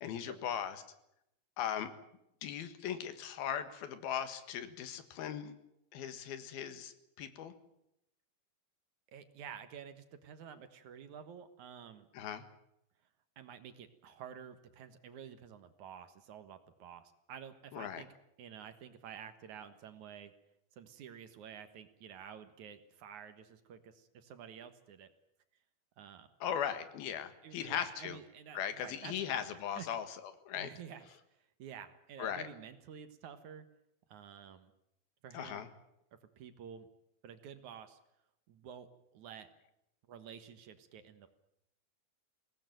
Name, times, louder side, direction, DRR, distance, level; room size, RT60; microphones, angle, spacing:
voice 1, 0.0-0.8 1.6-1.9 2.4-5.5 5.9-7.5 12.1-12.4 17.7-18.0 26.4-28.2 28.5-30.2 30.5-30.7 32.2-32.5 35.3-35.7, left 9 dB, 85° left, 10 dB, 3.5 m, -38 dB
voice 2, 9.1-12.1 13.4-18.1 18.4-20.3 20.7-25.1 26.0-26.3 27.4-29.1 29.5-29.9 30.5-31.1 31.6-33.7 34.1-34.7 35.2-35.7 36.4-36.9 37.2-38.0 38.5-39.5 40.1-41.3, right 8 dB, 60° right, 10 dB, 2.5 m, -50 dB
22.0 x 18.0 x 9.3 m, 0.80 s
omnidirectional pair, 4.3 m